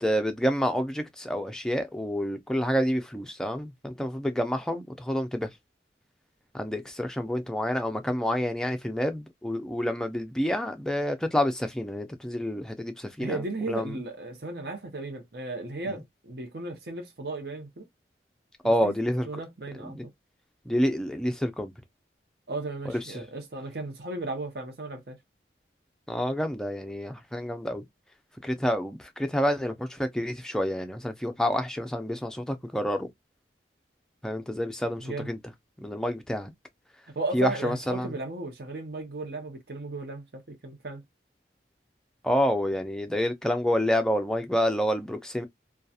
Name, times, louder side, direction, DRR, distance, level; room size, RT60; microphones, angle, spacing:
voice 1, 0.0-5.5 6.5-13.4 13.7-13.9 18.6-19.3 19.9-20.0 20.7-21.7 23.2-23.3 26.1-27.8 28.4-33.1 34.2-35.4 35.8-36.5 37.3-38.1 42.2-45.5, equal, 5° left, 0.4 m, -28 dB
voice 2, 13.2-17.9 18.6-18.9 19.2-20.1 22.5-25.2 35.0-35.3 37.2-41.0, right 2 dB, 60° right, 0.8 m, -35 dB
2.8 x 2.3 x 2.3 m
head